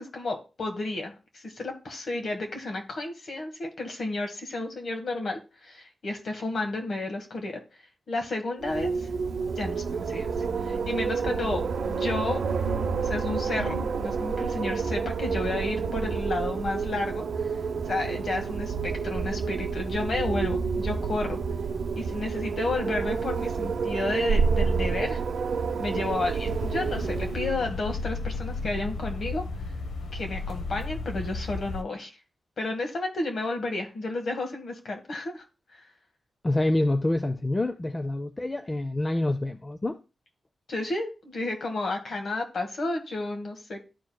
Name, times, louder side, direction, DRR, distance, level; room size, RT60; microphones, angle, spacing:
voice 1, 0.0-7.6 8.1-9.1 9.6-12.4 13.0-17.2 17.9-21.4 21.9-25.2 25.8-29.4 30.1-32.1 32.6-35.4 40.7-43.8, left 2 dB, 65° left, 1.7 m, -32 dB
Wind, 8.6-27.6, right 5 dB, 75° right, 0.7 m, -29 dB
sound 1, 26.5-31.8, left 3 dB, 85° left, 0.8 m, -34 dB
voice 2, 36.4-40.0, left 1 dB, 25° left, 0.5 m, -27 dB
13.0 x 4.5 x 2.2 m
cardioid pair, 80°, 0 cm